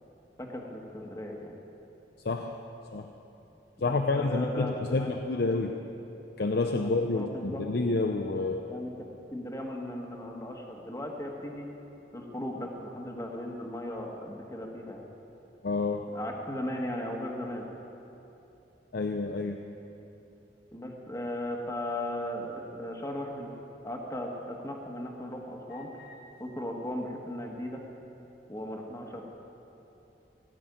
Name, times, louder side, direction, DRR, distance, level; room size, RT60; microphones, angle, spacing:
voice 1, 0.4-1.5 3.8-5.1 7.1-7.6 8.7-8.9 9.3-11.7 12.1-15.1 16.1-17.6 20.7-25.9 26.4-27.8 28.5-29.2, left 1 dB, 20° left, 1 dB, 1.4 m, -37 dB
voice 2, 2.2-2.6 2.9-3.1 3.8-5.8 6.4-8.7 15.6-16.1 18.9-19.6 25.7-26.1, left 3 dB, 60° left, 4 dB, 0.6 m, -29 dB
17.0 x 6.2 x 9.3 m, 3.0 s
head